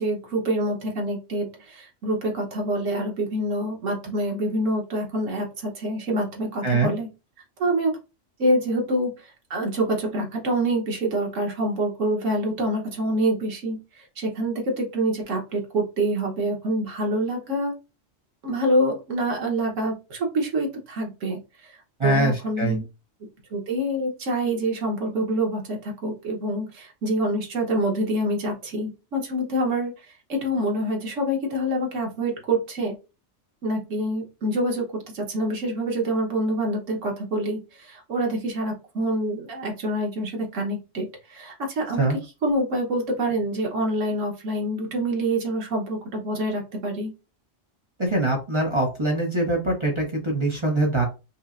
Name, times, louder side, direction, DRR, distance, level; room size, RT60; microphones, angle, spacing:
voice 1, 0.0-7.1 7.6-7.9 8.4-9.1 9.5-17.7 18.4-21.7 22.0-22.8 23.5-29.9 30.3-32.9 33.6-42.1 42.4-47.1, right 1 dB, 90° right, 0 dB, 1.4 m, -26 dB
voice 2, 22.0-22.8 42.0-42.2 48.0-51.0, right 2 dB, 30° right, 0 dB, 0.6 m, -23 dB
5.2 x 2.0 x 2.5 m, 0.29 s
omnidirectional pair, 1.3 m